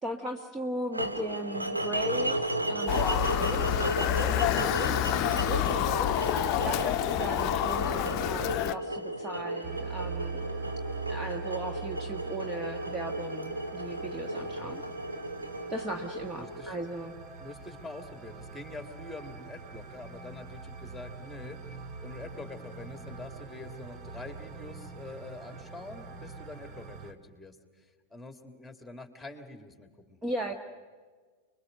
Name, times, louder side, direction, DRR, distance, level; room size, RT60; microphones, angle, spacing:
voice 1, 0.0-3.6 4.2-5.0 5.3-6.2 6.6-10.4 11.1-14.8 15.7-17.2 30.2-30.5, right 1 dB, 15° right, 5 dB, 1.3 m, -37 dB
sound 1, 0.9-17.0, right 1 dB, 85° right, 2.0 m, -34 dB
Motor vehicle (road) / Siren, 2.9-8.7, left 12 dB, 35° left, 0.8 m, -28 dB
sound 2, 9.6-27.1, right 4 dB, 35° right, 1.8 m, -43 dB
voice 2, 14.4-14.8 16.4-16.8 17.4-30.2 30.5-30.6, left 2 dB, 5° left, 6 dB, 2.6 m, -46 dB
29.5 x 22.0 x 6.7 m, 1.5 s
figure-of-eight pair, 90°, 0 cm